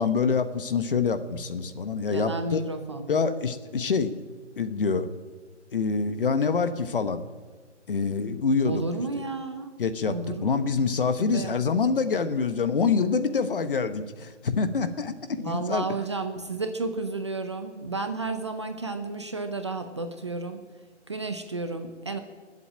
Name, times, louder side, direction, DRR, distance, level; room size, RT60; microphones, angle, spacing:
voice 1, 0.0-2.6 3.1-4.1 4.6-5.1 5.7-7.2 7.9-8.8 9.8-15.9, left 5 dB, 45° left, 11 dB, 1.1 m, -26 dB
voice 2, 2.1-3.1 8.7-9.7 10.0-10.5 11.2-11.6 15.4-20.6 21.1-22.2, right 3 dB, 25° right, 7 dB, 0.7 m, -32 dB
20.0 x 8.2 x 8.9 m, 1.4 s
hypercardioid pair, 165°, 36 cm